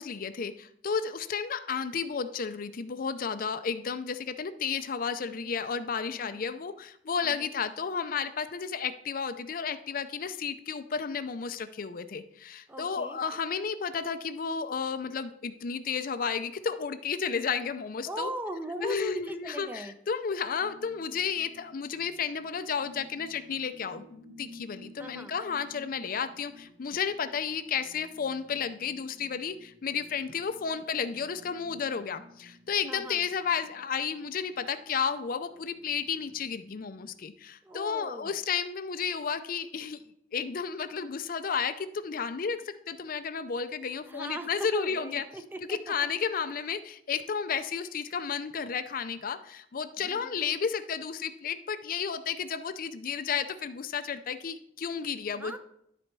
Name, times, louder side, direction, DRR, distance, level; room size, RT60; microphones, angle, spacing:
voice 1, 0.0-18.3 18.8-40.0 40.3-45.2 45.7-55.5, left 6 dB, 55° left, 11 dB, 0.5 m, -32 dB
voice 2, 5.3-5.8 6.1-6.5 7.2-7.5 12.7-13.2 18.1-19.9 25.0-25.4 32.9-33.2 37.6-38.3 44.0-46.1 46.4-46.5 50.0-50.5 55.3-55.6, equal, 10° right, 7 dB, 0.7 m, -40 dB
sound 1, 20.6-37.2, left 1 dB, 55° right, 1.3 m, -54 dB
12.5 x 4.3 x 4.6 m, 0.73 s
head